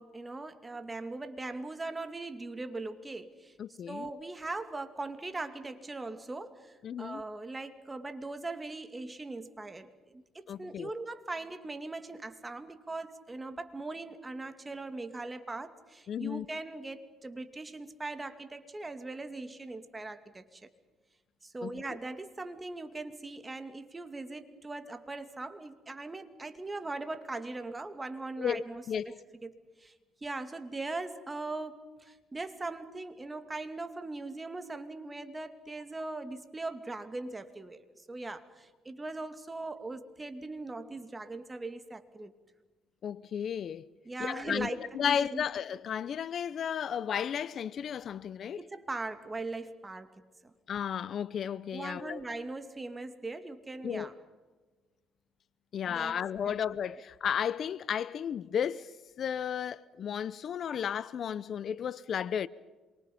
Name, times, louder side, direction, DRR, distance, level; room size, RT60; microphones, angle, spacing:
voice 1, 0.0-3.5 3.9-20.6 21.4-29.1 29.4-29.9 30.2-42.3 44.0-45.5 48.5-50.1 50.4-50.5 51.7-54.1 55.8-56.2 56.4-56.5, right 2 dB, 20° right, 2.4 m, -40 dB
voice 2, 3.6-4.1 6.8-7.2 10.5-10.9 16.1-16.5 21.6-21.8 28.4-29.2 43.0-43.9 44.2-44.7 44.9-48.6 50.7-52.2 53.8-54.1 55.7-62.5, left 8 dB, 55° left, 0.7 m, -33 dB
27.5 x 24.0 x 5.4 m
cardioid pair, 85°, 0 cm